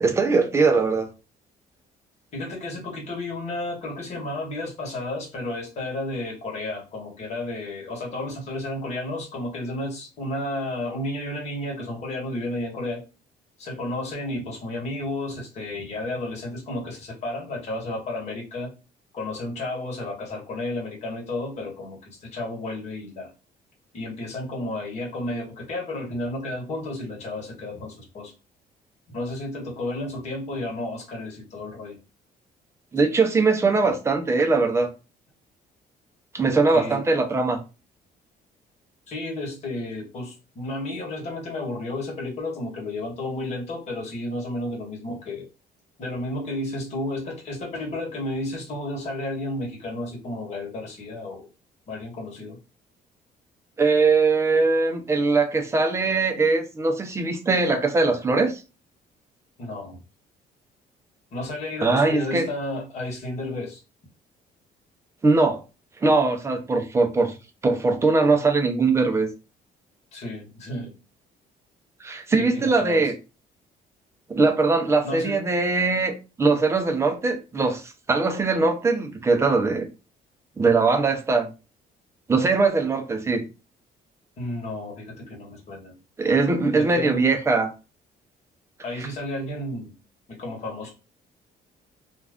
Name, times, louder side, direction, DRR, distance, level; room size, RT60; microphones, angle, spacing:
voice 1, 0.0-1.1 32.9-34.9 36.3-37.6 53.8-58.6 61.8-62.5 65.2-65.6 66.0-67.3 67.6-69.3 72.0-73.1 74.3-79.9 80.6-81.5 82.3-83.4 86.2-87.7 88.9-89.1, right 3 dB, 15° right, 0.4 m, -21 dB
voice 2, 2.3-13.0 13.6-18.7 19.1-23.3 23.9-28.3 29.1-32.0 36.7-37.0 39.1-45.5 46.0-51.5 51.9-52.6 59.6-60.0 61.3-63.8 70.1-70.9 72.4-73.1 75.0-75.5 84.4-86.0 86.7-87.2 88.8-89.9 90.3-90.9, left 1 dB, 45° left, 1.2 m, -32 dB
2.4 x 2.2 x 3.4 m
cardioid pair, 165°, 16 cm